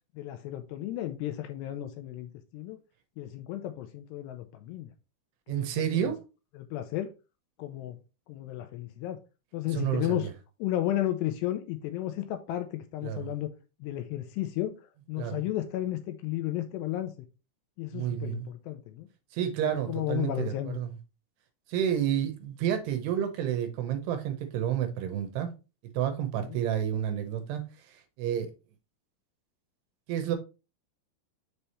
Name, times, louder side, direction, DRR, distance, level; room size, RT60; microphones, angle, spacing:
voice 1, 0.2-2.8 3.2-4.9 5.6-6.1 6.6-7.1 7.6-8.0 8.3-9.2 9.5-10.3 10.6-13.5 13.8-14.8 15.1-17.1 17.8-19.1 19.6-20.8 26.4-26.6, left 13 dB, 85° left, 2.5 m, -33 dB
voice 2, 5.5-6.2 9.7-10.3 13.0-13.3 15.2-15.4 17.9-18.5 19.3-21.0 21.7-25.5 25.9-27.6 28.2-28.5 30.1-30.4, right 10 dB, 75° right, 2.7 m, -30 dB
7.0 x 3.4 x 4.1 m
omnidirectional pair, 5.2 m